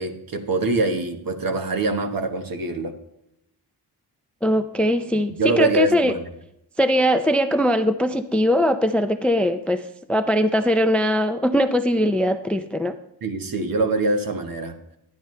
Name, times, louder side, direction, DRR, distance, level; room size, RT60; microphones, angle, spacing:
voice 1, 0.0-2.9 5.4-6.2 13.2-14.7, right 2 dB, 55° right, 6 dB, 1.4 m, -24 dB
voice 2, 4.4-6.2 6.8-9.8 10.1-13.0, equal, 5° left, 10 dB, 0.4 m, -21 dB
12.5 x 10.5 x 3.2 m, 0.79 s
wide cardioid pair, 125°, 41 cm